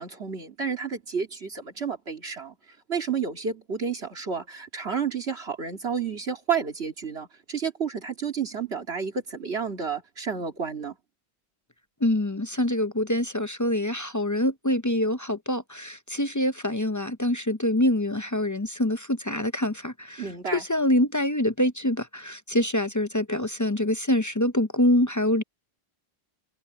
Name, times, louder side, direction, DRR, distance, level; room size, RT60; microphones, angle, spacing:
voice 1, 0.0-2.6 2.9-11.0 20.2-20.7, right 6 dB, 75° right, 2.8 m, -31 dB
voice 2, 12.0-20.2 20.7-25.4, left 1 dB, 20° left, 0.5 m, -25 dB
omnidirectional pair, 1.1 m